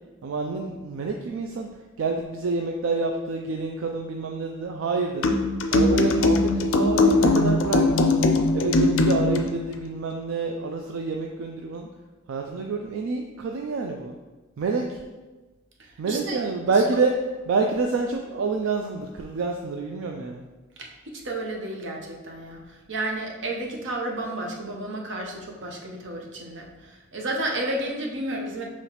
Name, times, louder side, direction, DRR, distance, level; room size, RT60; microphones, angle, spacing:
voice 1, 0.2-1.7 2.0-5.4 5.7-8.1 8.5-11.9 12.3-14.2 14.6-15.0 16.0-17.2 17.5-20.5, right 4 dB, 80° right, 2 dB, 0.4 m, -27 dB
sound 1, 5.2-9.5, left 2 dB, 70° left, 0.4 m, -20 dB
voice 2, 15.8-16.4 20.8-28.6, right 1 dB, 65° right, 0 dB, 0.8 m, -32 dB
5.6 x 3.0 x 2.9 m, 1.2 s
head